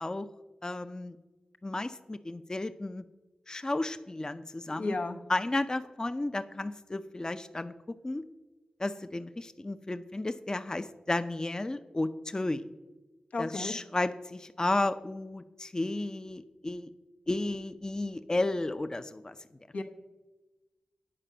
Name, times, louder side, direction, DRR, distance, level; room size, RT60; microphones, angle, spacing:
voice 1, 0.6-1.2 1.6-3.0 3.5-5.0 5.3-7.7 8.0-8.2 8.8-12.6 13.4-16.9 17.3-19.3, left 2 dB, 30° left, 10 dB, 0.5 m, -33 dB
voice 2, 4.7-5.2 13.3-13.7 19.7-19.8, left 3 dB, 85° left, 2 dB, 0.9 m, -33 dB
8.7 x 5.0 x 6.7 m, 1.1 s
cardioid pair, 45°, 2 cm